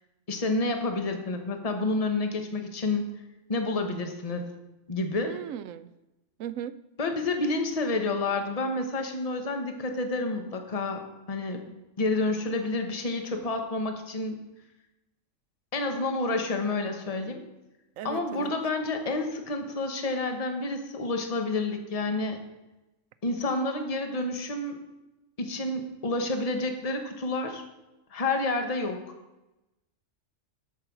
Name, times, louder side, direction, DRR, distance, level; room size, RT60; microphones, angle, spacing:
voice 1, 0.3-3.1 3.5-4.5 4.9-5.3 7.0-11.0 11.3-11.6 12.0-14.4 15.7-17.4 18.0-22.4 23.2-24.8 25.4-27.6 28.1-29.0, left 2 dB, 30° left, 5 dB, 1.1 m, -29 dB
voice 2, 5.2-5.9 6.4-6.8 18.0-18.5, right 10 dB, 90° right, 14 dB, 1.0 m, -37 dB
13.0 x 5.7 x 6.0 m, 1.0 s
omnidirectional pair, 1.3 m